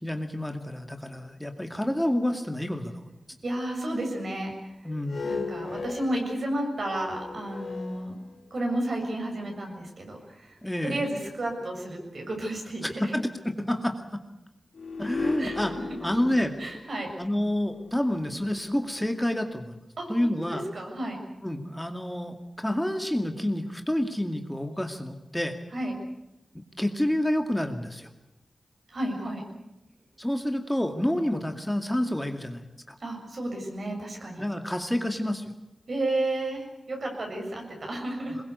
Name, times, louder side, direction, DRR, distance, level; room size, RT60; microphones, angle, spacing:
voice 1, 0.0-2.9 4.8-5.2 10.6-11.0 12.8-14.0 15.0-15.7 16.0-16.5 17.2-19.8 20.1-20.6 21.4-25.5 26.8-28.1 30.2-33.0 34.4-35.4, left 1 dB, 10° left, 5 dB, 2.3 m, -28 dB
voice 2, 3.4-4.9 5.2-8.2 8.5-13.1 15.4-15.9 16.6-17.1 20.0-21.2 25.7-25.9 28.9-29.4 33.0-34.4 35.9-38.4, right 1 dB, 65° right, 2 dB, 7.3 m, -32 dB
sound 1, 4.9-8.7 9.4-9.5 14.7-19.0, left 4 dB, 80° left, 3.6 m, -37 dB
22.5 x 21.5 x 8.3 m, 0.91 s
cardioid pair, 60°, 0 cm